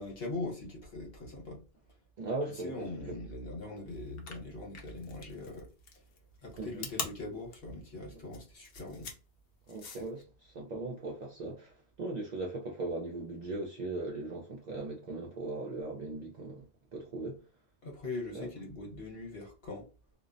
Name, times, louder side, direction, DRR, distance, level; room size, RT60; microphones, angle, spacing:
voice 1, 0.0-1.6 2.5-5.7 6.4-9.1 17.8-19.9, left 2 dB, 60° left, 1.3 m, -41 dB
voice 2, 2.2-3.1 6.6-6.9 9.7-16.7 16.9-17.4 18.3-18.5, right 2 dB, 55° right, 0.5 m, -39 dB
sound 1, 4.1-10.2, left 5 dB, 75° left, 0.9 m, -43 dB
2.5 x 2.0 x 2.5 m
omnidirectional pair, 1.1 m